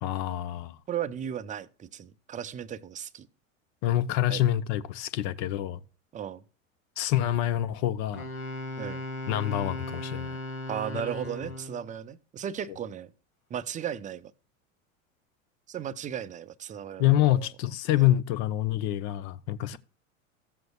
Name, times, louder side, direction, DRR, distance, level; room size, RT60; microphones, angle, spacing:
voice 1, 0.0-0.8 3.8-5.8 7.0-8.3 9.3-10.4 17.0-19.8, left 13 dB, 45° left, 0.8 m, -26 dB
voice 2, 0.9-3.3 4.3-4.4 6.1-6.4 8.8-9.0 10.7-13.1 13.5-14.3 15.7-17.5 18.0-18.1, right 9 dB, 20° right, 0.5 m, -36 dB
Wind instrument woodwind instrument, 8.1-11.9, left 1 dB, 80° left, 2.5 m, -37 dB
15.0 x 7.7 x 2.3 m
figure-of-eight pair, 80°, 42 cm